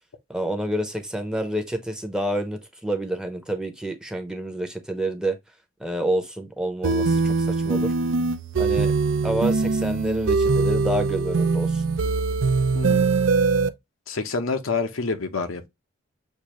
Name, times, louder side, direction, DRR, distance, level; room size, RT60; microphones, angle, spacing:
voice 1, 0.3-5.4 5.8-7.9 8.6-8.9 9.2-11.8, right 1 dB, 5° right, 0.7 m, -28 dB
sound 1, 6.8-13.7, right 4 dB, 65° right, 0.5 m, -22 dB
voice 2, 14.1-15.7, left 4 dB, 80° left, 0.8 m, -27 dB
6.6 x 2.5 x 3.0 m
head